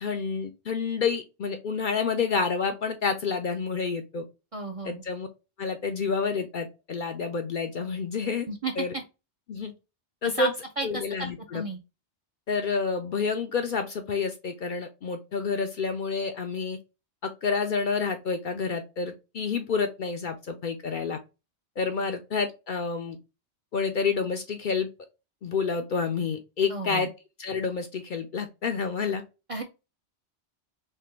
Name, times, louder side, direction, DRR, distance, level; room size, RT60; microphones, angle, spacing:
voice 1, 0.0-4.2 4.8-5.3 5.6-8.5 8.8-8.9 9.5-9.7 10.2-10.5 10.8-11.6 12.5-16.8 17.2-21.2 21.8-23.2 23.7-24.9 25.4-27.1 27.4-29.2, left 5 dB, 55° left, 6 dB, 0.6 m, -29 dB
voice 2, 4.5-5.0 8.5-8.9 10.4-10.5 10.8-10.9 11.2-11.8 26.7-27.1 29.5-29.6, right 2 dB, 40° right, 3 dB, 0.5 m, -32 dB
3.4 x 2.2 x 4.2 m, 0.27 s
omnidirectional pair, 1.2 m